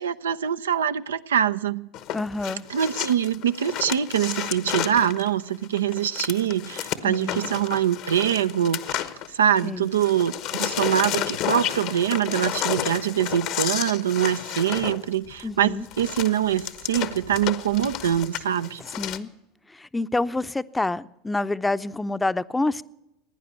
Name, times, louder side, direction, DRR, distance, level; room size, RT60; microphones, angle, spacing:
voice 1, 0.0-1.9 2.7-18.8, right 9 dB, 90° right, 0.5 m, -24 dB
sound 1, 1.9-9.7 9.9-19.2, left 12 dB, 60° left, 1.1 m, -31 dB
voice 2, 2.1-2.6 7.0-7.4 9.6-9.9 15.4-15.9 19.0-19.3 19.7-22.8, left 2 dB, 10° left, 0.6 m, -27 dB
17.0 x 9.8 x 8.1 m
hypercardioid pair, 85°, 0 cm